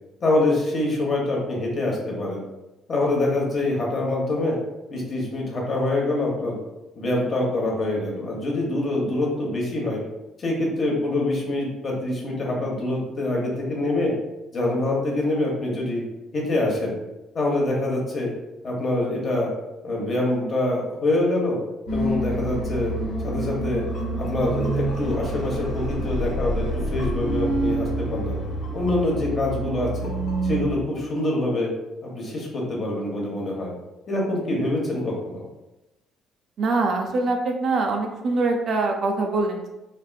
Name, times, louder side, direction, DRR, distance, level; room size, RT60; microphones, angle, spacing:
voice 1, 0.2-2.4 2.9-4.6 4.9-6.6 7.0-10.0 10.4-14.1 14.5-16.0 16.3-17.0 17.3-18.3 18.6-19.5 19.8-21.6 21.9-22.9 23.2-23.8 24.2-28.4 28.7-30.1 30.4-31.7 32.0-33.7 34.1-35.4, left 2 dB, 35° left, -2 dB, 0.9 m, -25 dB
sound 1, 21.9-30.7, right 1 dB, 85° left, 1.3 m, -27 dB
voice 2, 36.6-39.7, right 3 dB, 50° right, 2 dB, 0.4 m, -23 dB
3.3 x 2.5 x 2.3 m, 0.98 s
cardioid pair, 120°, 0 cm